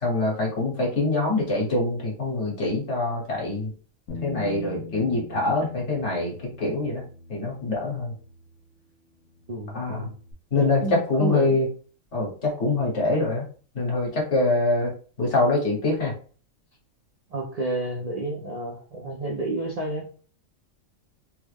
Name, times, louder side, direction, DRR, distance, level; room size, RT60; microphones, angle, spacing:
voice 1, 0.0-3.7 4.2-7.0 7.3-8.1 9.7-10.1 10.5-11.7 12.1-13.5 13.7-14.9 15.2-16.1, left 2 dB, 60° left, -2 dB, 1.5 m, -24 dB
Bass guitar, 4.1-8.8 9.1-10.3, left 4 dB, 80° left, 1.0 m, -43 dB
voice 2, 9.5-10.1 10.8-11.6 17.3-20.1, right 2 dB, 50° right, -1 dB, 0.4 m, -30 dB
3.4 x 2.1 x 3.3 m, 0.40 s
omnidirectional pair, 1.4 m